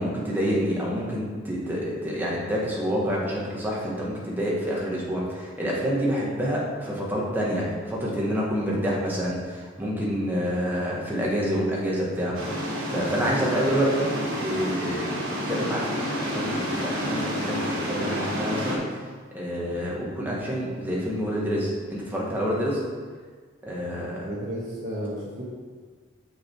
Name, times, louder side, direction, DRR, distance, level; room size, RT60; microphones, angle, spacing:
voice 1, 0.0-12.3 12.9-15.1 15.5-18.8 19.3-22.8 23.6-24.3, equal, 10° right, -5 dB, 1.6 m, -27 dB
sound 1, 12.3-18.8, equal, 75° right, 2.4 m, -29 dB
voice 2, 24.2-25.4, equal, 40° right, -8 dB, 1.4 m, -33 dB
6.7 x 6.2 x 4.8 m, 1.6 s
head